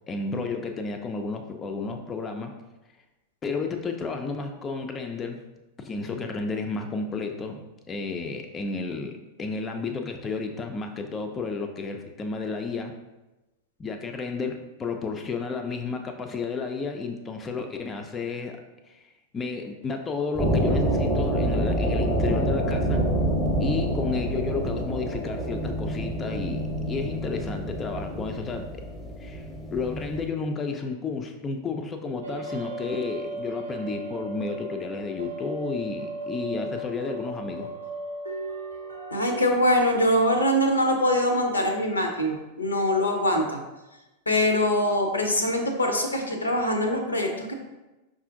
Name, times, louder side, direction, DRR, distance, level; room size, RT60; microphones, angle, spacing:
voice 1, 0.1-2.5 3.4-5.4 5.8-7.6 7.9-13.0 13.8-18.6 18.9-23.1 23.6-28.7 29.2-37.7, left 4 dB, 20° left, 4 dB, 0.3 m, -32 dB
sound 1, 20.3-30.3, right 1 dB, 5° right, 0.7 m, -27 dB
sound 2, 32.2-39.4, right 2 dB, 80° right, 0.6 m, -36 dB
voice 2, 39.1-43.6 44.3-47.5, left 1 dB, 80° left, 3 dB, 0.5 m, -23 dB
5.3 x 2.5 x 2.5 m, 1.0 s
figure-of-eight pair, 90°, 0 cm